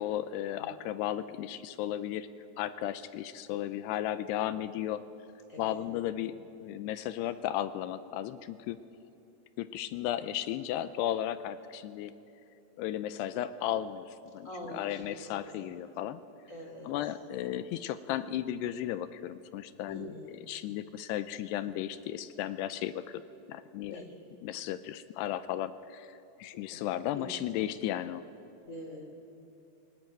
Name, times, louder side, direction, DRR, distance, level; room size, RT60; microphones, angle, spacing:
voice 1, 0.0-2.3 2.6-5.0 5.6-8.8 9.6-12.1 12.8-14.1 14.3-14.5 14.7-16.2 16.9-20.1 20.5-23.2 23.5-24.0 24.4-28.3, left 12 dB, 80° left, 13 dB, 2.5 m, -35 dB
voice 2, 5.5-5.9 14.4-15.5 16.5-17.1 19.9-20.3 23.9-24.1 26.5-26.9 27.1-27.3 28.6-29.2, left 1 dB, 25° left, 2 dB, 2.0 m, -44 dB
19.0 x 19.0 x 9.0 m, 2.9 s
omnidirectional pair, 5.3 m